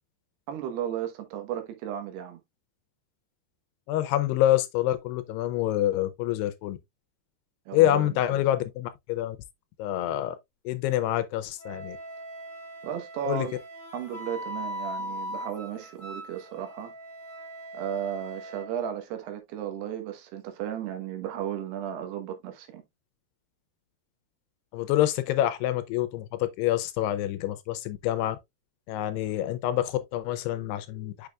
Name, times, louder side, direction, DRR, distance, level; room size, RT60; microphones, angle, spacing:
voice 1, 0.5-2.4 7.7-8.4 12.8-13.5 13.9-16.9 17.7-22.8, right 10 dB, 75° right, 3.1 m, -34 dB
voice 2, 3.9-6.8 7.7-9.4 9.8-10.4 10.7-12.0 13.3-13.5 24.7-28.4 28.9-31.3, left 13 dB, 80° left, 2.5 m, -26 dB
Wind instrument woodwind instrument, 11.6-18.7, equal, 20° left, 2.4 m, -40 dB
6.5 x 6.4 x 2.3 m
omnidirectional pair, 5.0 m